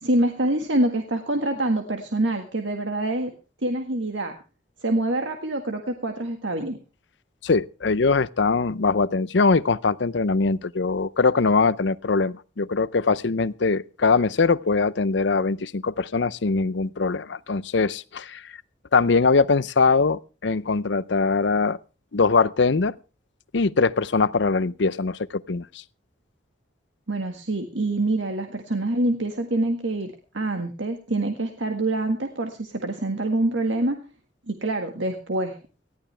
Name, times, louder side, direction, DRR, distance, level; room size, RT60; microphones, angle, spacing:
voice 1, 0.0-3.3 3.6-4.4 4.8-6.8 27.1-34.0 34.5-35.6, right 2 dB, 85° right, 1.7 m, -25 dB
voice 2, 7.4-18.6 18.9-21.8 22.1-22.9 23.5-25.7, left 4 dB, 75° left, 0.6 m, -22 dB
19.0 x 14.0 x 3.4 m
head